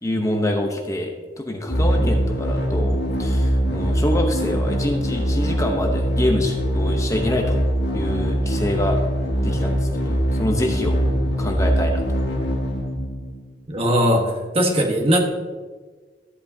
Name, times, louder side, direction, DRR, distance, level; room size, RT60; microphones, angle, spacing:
voice 1, 0.0-1.1 1.4-7.6 7.9-9.0 9.4-11.0 11.4-12.0, left 1 dB, 20° left, 2 dB, 0.8 m, -26 dB
sound 1, 1.7-13.6, equal, 75° left, 1.8 m, -22 dB
voice 2, 13.7-15.2, equal, 35° right, 2 dB, 1.3 m, -20 dB
13.0 x 8.6 x 2.7 m, 1.4 s
head